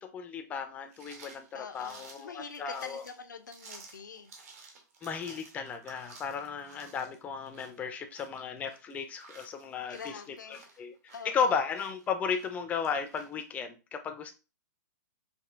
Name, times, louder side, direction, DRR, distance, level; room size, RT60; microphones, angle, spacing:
voice 1, 0.0-3.0 5.0-10.2 10.5-14.3, left 6 dB, 15° left, 0.4 m, -35 dB
sound 1, 0.9-13.4, right 4 dB, 55° right, 1.1 m, -54 dB
voice 2, 1.5-4.3 9.9-10.8 11.1-11.6, left 6 dB, 85° left, 0.6 m, -45 dB
4.9 x 2.6 x 2.4 m
hypercardioid pair, 135°, 10 cm